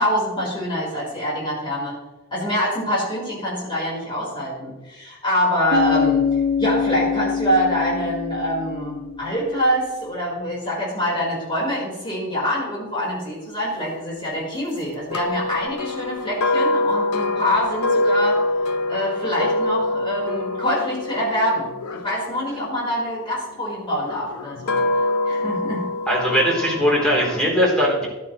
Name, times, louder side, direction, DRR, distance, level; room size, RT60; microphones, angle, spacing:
voice 1, 0.0-1.9 2.3-6.2 6.6-18.4 18.9-25.9, equal, 20° left, -5 dB, 4.4 m, -25 dB
Bass guitar, 5.7-9.5, left 7 dB, 75° left, 1.4 m, -24 dB
sound 1, 15.1-23.3 24.0-27.5, left 2 dB, 90° left, 0.8 m, -25 dB
voice 2, 26.1-28.1, equal, 5° left, -4 dB, 3.4 m, -19 dB
14.0 x 11.0 x 3.1 m, 1.1 s
head